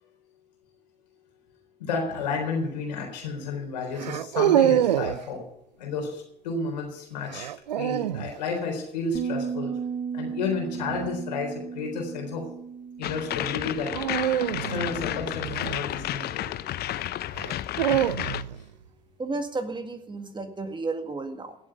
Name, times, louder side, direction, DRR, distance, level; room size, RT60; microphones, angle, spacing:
voice 1, 1.8-5.4 5.8-7.5 7.8-9.7 10.1-12.4 13.0-14.0 14.5-16.4 16.9-17.0, left 4 dB, 80° left, 1 dB, 4.0 m, -31 dB
sound 1, 2.1-2.4 4.0-5.2 7.3-8.3 10.7-11.1 13.9-16.3 17.3-18.6, right 12 dB, 90° right, 0.4 m, -26 dB
Bass guitar, 9.1-15.4, right 6 dB, 40° right, 1.2 m, -36 dB
sound 2, 13.0-18.4, left 13 dB, 50° left, 0.7 m, -32 dB
voice 2, 19.2-21.6, right 3 dB, 20° right, 7 dB, 2.0 m, -32 dB
17.0 x 7.5 x 6.9 m, 0.74 s
hypercardioid pair, 65°, 21 cm